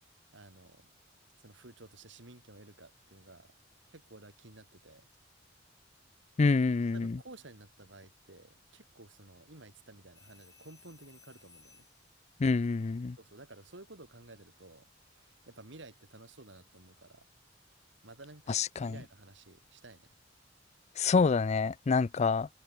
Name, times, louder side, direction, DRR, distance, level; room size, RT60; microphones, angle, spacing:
voice 1, 0.3-0.9 1.4-3.5 3.9-5.1 6.9-11.9 13.1-17.2 18.0-20.1, right 2 dB, 75° right, 3.1 m, -53 dB
voice 2, 6.4-7.2 12.4-13.2 18.5-18.9 21.0-22.5, left 4 dB, 35° left, 0.4 m, -27 dB
sound 1, 10.1-12.1 14.5-14.8, left 5 dB, 20° left, 6.1 m, -61 dB
head